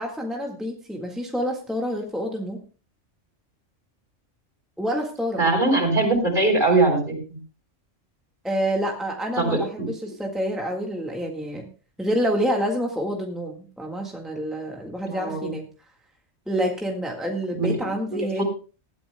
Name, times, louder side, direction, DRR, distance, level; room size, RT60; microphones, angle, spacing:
voice 1, 0.0-2.6 4.8-5.4 8.4-11.7 12.0-15.7 16.5-18.4, equal, ahead, 1 dB, 1.6 m, -28 dB
voice 2, 5.4-7.4 9.4-9.6 15.0-15.5 17.5-17.7 18.4-18.5, right 2 dB, 40° right, 3 dB, 4.2 m, -21 dB
19.0 x 13.0 x 2.2 m, 0.35 s
omnidirectional pair, 1.3 m